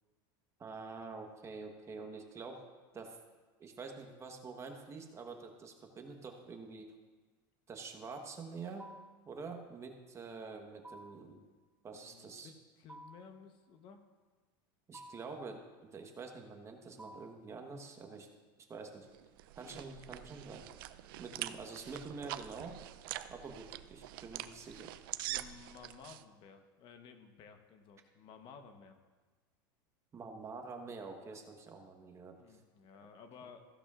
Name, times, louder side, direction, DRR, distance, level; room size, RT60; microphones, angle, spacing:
voice 1, 0.6-2.6 2.9-3.2 3.6-6.9 7.7-8.9 9.3-11.4 11.8-12.5 14.9-18.3 18.6-19.1 19.5-20.7 21.2-22.8 23.3-24.9 30.1-32.6, right 4 dB, 25° right, 4 dB, 1.2 m, -47 dB
sound 1, 8.8-9.3 10.8-11.3 12.9-13.4 14.9-15.4 17.0-17.5, right 1 dB, 10° right, 0.3 m, -52 dB
voice 2, 11.9-14.0 19.6-20.5 21.3-21.7 25.3-29.0 32.4-33.7, left 6 dB, 45° left, 7 dB, 1.0 m, -56 dB
sound 2, 19.1-26.2, right 14 dB, 75° right, 0.5 m, -45 dB
15.5 x 11.5 x 2.5 m, 1.3 s
supercardioid pair, 125°, 12 cm